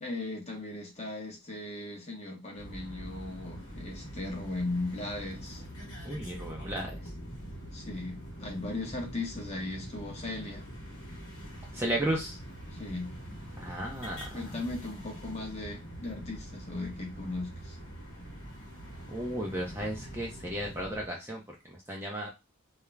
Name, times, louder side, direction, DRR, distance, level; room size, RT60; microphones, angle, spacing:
voice 1, 0.0-5.6 7.7-10.7 12.7-13.2 14.3-17.8, left 2 dB, 30° left, 1 dB, 0.7 m, -37 dB
sound 1, 2.6-21.1, equal, 55° left, 1.0 m, -44 dB
voice 2, 6.0-7.0 11.7-12.4 13.6-14.5 19.1-22.3, right 1 dB, 10° right, -1 dB, 0.5 m, -34 dB
2.3 x 2.0 x 3.2 m, 0.23 s
head